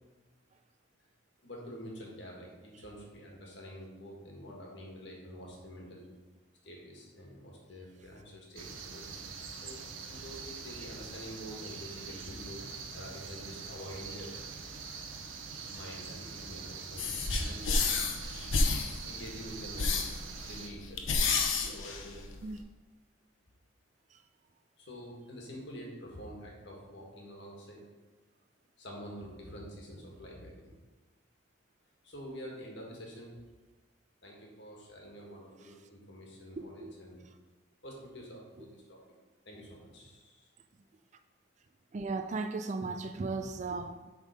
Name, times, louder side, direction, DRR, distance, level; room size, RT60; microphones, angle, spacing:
voice 1, 1.4-6.1 6.6-9.2 9.6-9.8 10.1-12.6 12.9-14.3 15.7-17.8 19.0-20.0 20.4-22.2 24.8-27.8 28.8-30.7 32.0-33.3 34.2-37.2 37.8-39.0 39.5-40.5, equal, 60° left, -2 dB, 1.7 m, -47 dB
sound 1, 8.6-20.7, right 5 dB, 80° right, 0.7 m, -44 dB
sound 2, 17.0-22.6, left 4 dB, 80° left, 0.8 m, -31 dB
voice 2, 36.6-36.9 37.2-37.4 38.6-38.7 41.9-44.1, right 3 dB, 35° right, 8 dB, 0.3 m, -37 dB
7.3 x 3.7 x 5.0 m, 1.2 s
head